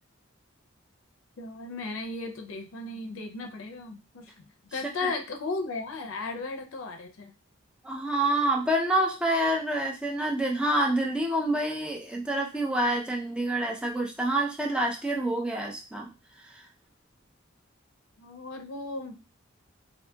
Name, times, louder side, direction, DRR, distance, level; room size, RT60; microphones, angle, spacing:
voice 1, 1.4-4.3 4.7-7.3 18.2-19.2, left 3 dB, 70° left, 4 dB, 0.5 m, -35 dB
voice 2, 4.7-5.1 7.8-16.1 16.5-16.6, right 1 dB, 5° right, 0 dB, 0.4 m, -27 dB
2.7 x 2.6 x 2.2 m, 0.30 s
head